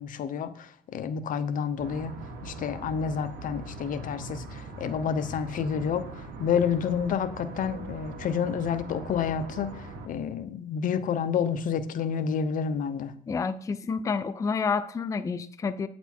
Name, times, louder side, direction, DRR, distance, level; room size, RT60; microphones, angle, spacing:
voice 1, 0.0-2.1 2.4-6.1 6.4-13.1, left 7 dB, 55° left, 11 dB, 0.7 m, -29 dB
sound 1, 1.8-10.1, right 2 dB, 65° right, 1.4 m, -41 dB
voice 2, 13.3-15.9, left 5 dB, 20° left, 12 dB, 0.4 m, -29 dB
7.9 x 4.2 x 4.4 m, 0.65 s
cardioid pair, 110°, 17 cm